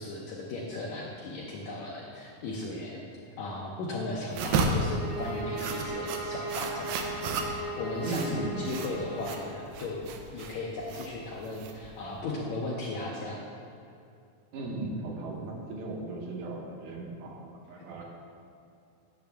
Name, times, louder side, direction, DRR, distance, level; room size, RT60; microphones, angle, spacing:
voice 1, 0.0-3.0 3.4-13.4 17.8-18.0, left 2 dB, 75° left, -4 dB, 1.8 m, -37 dB
sound 1, 4.3-12.2, right 3 dB, 85° right, 2.4 m, -33 dB
sound 2, 4.7-9.6, right 1 dB, 5° right, 0.6 m, -38 dB
voice 2, 8.0-8.7 14.5-18.0, right 3 dB, 70° right, -1 dB, 2.3 m, -36 dB
10.5 x 6.7 x 3.4 m, 2.6 s
omnidirectional pair, 4.0 m